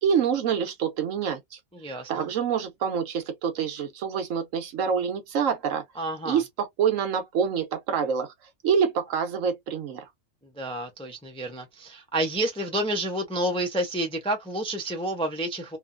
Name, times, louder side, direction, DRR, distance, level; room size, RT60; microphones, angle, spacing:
voice 1, 0.0-1.4 2.1-5.8 6.2-8.3 8.6-10.0, right 7 dB, 75° right, 1.1 m, -26 dB
voice 2, 1.7-2.3 6.0-6.4 10.6-15.8, right 1 dB, 5° left, 0.4 m, -29 dB
2.8 x 2.5 x 2.5 m
omnidirectional pair, 1.4 m